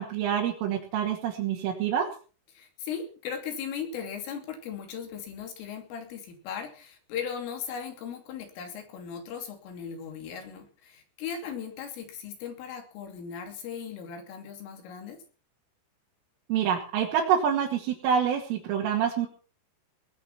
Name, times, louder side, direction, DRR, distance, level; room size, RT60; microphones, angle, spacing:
voice 1, 0.0-2.1 16.5-19.3, right 8 dB, 85° right, -2 dB, 4.9 m, -26 dB
voice 2, 2.5-15.2, left 7 dB, 85° left, 5 dB, 5.5 m, -38 dB
19.5 x 10.0 x 5.9 m, 0.38 s
omnidirectional pair, 5.6 m